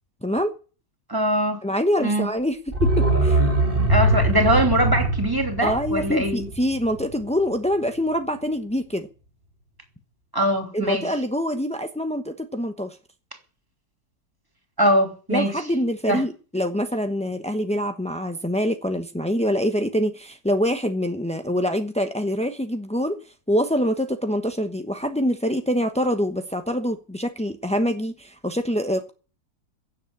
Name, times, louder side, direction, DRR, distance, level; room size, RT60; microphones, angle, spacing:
voice 1, 0.2-0.5 1.6-3.4 5.6-9.1 10.7-13.0 15.3-23.2 23.5-29.1, equal, 10° left, 0.4 m, -25 dB
voice 2, 1.1-1.6 2.0-2.3 3.9-6.5 10.3-11.1 14.8-15.5 16.1-16.2, right 1 dB, 10° right, 3.0 m, -22 dB
sound 1, 2.7-7.4 7.7-7.8, right 1 dB, 25° right, 2.7 m, -22 dB
16.0 x 7.4 x 9.6 m
omnidirectional pair, 2.1 m